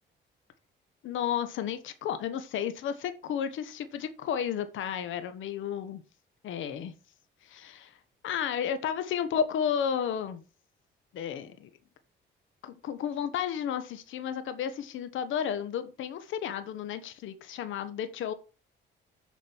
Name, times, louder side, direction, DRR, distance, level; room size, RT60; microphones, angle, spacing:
voice 1, 1.0-6.0 6.4-6.9 7.4-7.9 8.2-10.4 11.1-11.7 12.6-18.3, left 8 dB, 80° left, 1.2 m, -32 dB
7.3 x 5.3 x 6.0 m
cardioid pair, 90°, 20 cm